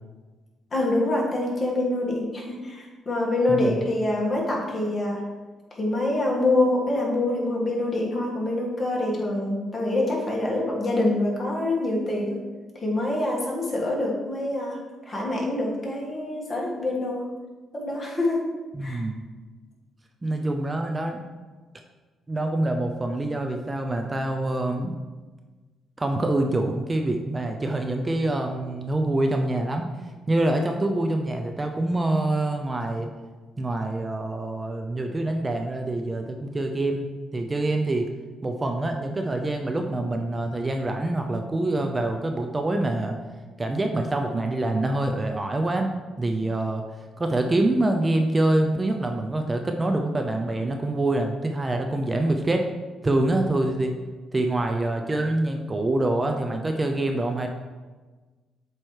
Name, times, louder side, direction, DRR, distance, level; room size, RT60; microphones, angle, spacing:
voice 1, 0.7-5.2 5.8-12.4 12.8-14.8 15.0-17.3 17.7-18.4 18.8-19.0, left 2 dB, 35° left, -3 dB, 1.8 m, -25 dB
voice 2, 18.7-19.2 20.2-21.2 22.3-25.0 26.0-29.9 30.3-33.1 33.6-38.1 38.4-43.2 43.6-45.9 46.2-52.6 53.0-53.9 54.3-57.5, right 2 dB, 25° right, 4 dB, 0.5 m, -25 dB
7.5 x 3.0 x 4.7 m, 1.3 s
cardioid pair, 90°, 0 cm